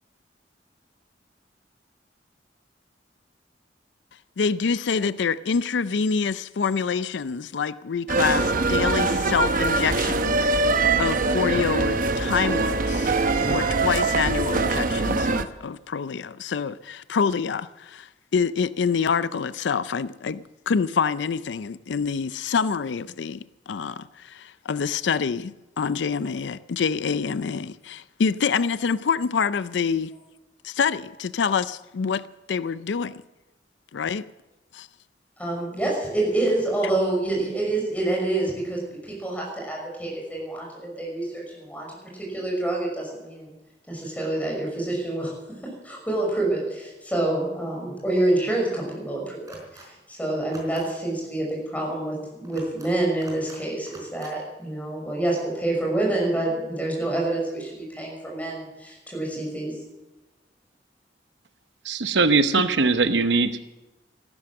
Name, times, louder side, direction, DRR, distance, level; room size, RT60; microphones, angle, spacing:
voice 1, 4.4-30.1 30.6-33.2 33.9-34.3 34.7-34.9, left 6 dB, 85° left, 0.5 m, -26 dB
sound 1, 8.1-15.5, right 3 dB, 50° right, 0.9 m, -23 dB
voice 2, 35.4-41.9 42.1-43.5 43.9-45.3 45.8-59.7, right 2 dB, 10° left, 6.0 m, -27 dB
sound 2, 49.5-49.9 50.4-50.9 52.4-52.9 53.2-53.6 53.9-54.3, right 1 dB, 20° right, 4.5 m, -46 dB
voice 3, 61.9-63.6, right 3 dB, 80° right, 0.9 m, -21 dB
14.5 x 12.5 x 7.7 m
head